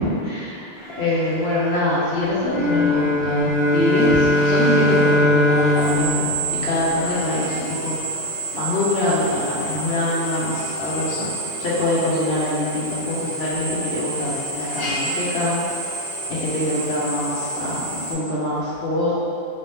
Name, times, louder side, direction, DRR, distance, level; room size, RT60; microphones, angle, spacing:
voice 1, 0.2-0.7 1.0-8.0 8.5-11.3 11.6-15.6 16.3-19.1, left 1 dB, 90° left, -7 dB, 1.0 m, -24 dB
Drill, 0.8-18.1, right 2 dB, 35° left, 0.6 m, -30 dB
sound 1, 2.4-7.2, left 1 dB, 50° right, 1.6 m, -19 dB
3.9 x 2.7 x 3.4 m, 2.6 s
omnidirectional pair, 1.0 m